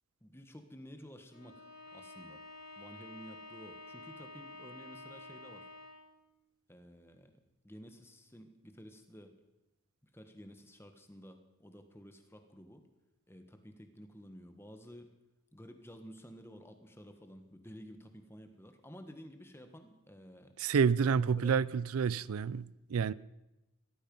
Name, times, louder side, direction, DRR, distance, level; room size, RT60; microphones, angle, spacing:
voice 1, 0.2-1.6 1.9-2.4 2.8-5.7 6.7-7.3 7.6-9.4 10.1-12.9 13.3-15.1 15.5-20.5 21.1-21.6, equal, 10° left, 1.3 m, -52 dB
Bowed string instrument, 1.3-6.1, left 2 dB, 45° left, 4.0 m, -50 dB
voice 2, 20.6-23.1, right 6 dB, 85° right, 0.4 m, -29 dB
17.5 x 14.0 x 5.4 m
head